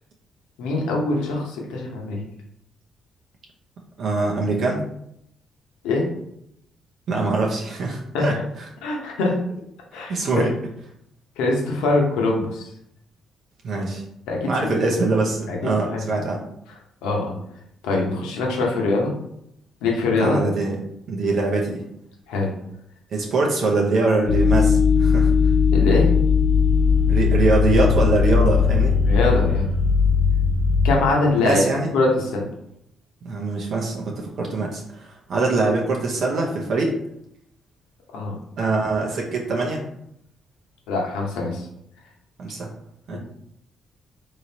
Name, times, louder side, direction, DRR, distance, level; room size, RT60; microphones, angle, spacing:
voice 1, 0.6-2.2 5.8-6.1 8.1-8.4 8.8-9.4 9.9-10.5 11.4-12.7 14.3-14.8 15.5-16.2 17.0-17.4 17.8-19.1 19.8-20.4 22.3-22.5 25.7-26.1 29.0-29.7 30.8-31.6 31.9-32.5 38.1-38.3 40.9-41.7 43.1-43.2, left 3 dB, 90° left, -1 dB, 0.9 m, -23 dB
voice 2, 4.0-4.8 7.1-8.4 10.1-10.5 13.6-14.0 14.5-16.4 20.2-20.8 21.1-21.8 23.1-25.3 27.1-29.0 31.4-31.9 33.2-37.0 38.6-39.8 42.4-42.7 43.1-43.2, right 3 dB, 65° right, -1 dB, 0.7 m, -23 dB
sound 1, 24.3-30.9, left 5 dB, 60° left, 0.7 m, -18 dB
3.7 x 3.0 x 2.8 m, 0.76 s
supercardioid pair, 70°, 0 cm